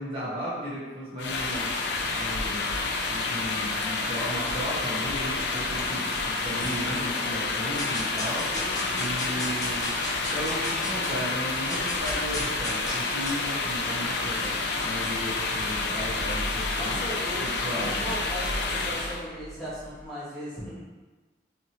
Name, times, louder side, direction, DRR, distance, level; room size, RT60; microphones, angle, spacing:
voice 1, 0.0-1.7 2.2-2.8 3.0-8.7 9.0-9.9 10.3-14.5 14.8-17.0 17.6-18.1, equal, 30° right, -10 dB, 0.6 m, -35 dB
sound 1, 1.2-19.2, left 3 dB, 80° left, 0.4 m, -29 dB
sound 2, 6.1-7.3 7.8-11.2 11.5-20.0, left 1 dB, 20° left, 0.5 m, -38 dB
voice 2, 8.5-9.5 16.8-20.8, equal, ahead, -12 dB, 1.0 m, -38 dB
2.7 x 2.6 x 2.8 m, 1.3 s
head